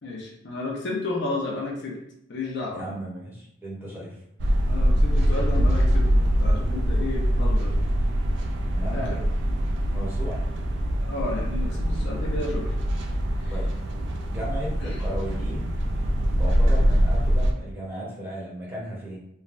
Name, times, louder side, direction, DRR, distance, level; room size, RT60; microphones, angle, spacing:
voice 1, 0.0-2.0 2.3-3.0 4.7-7.7 8.9-9.2 11.0-12.7 13.4-13.5 14.8-15.0, left 2 dB, 55° left, -2 dB, 0.6 m, -32 dB
voice 2, 2.8-4.1 8.7-9.3 9.6-10.5 13.5-13.7 14.3-15.7 16.4-19.2, right 1 dB, 10° right, -6 dB, 0.8 m, -35 dB
sound 1, 4.4-17.5, equal, 55° right, 0.3 m, -23 dB
3.2 x 2.1 x 2.5 m, 0.77 s
head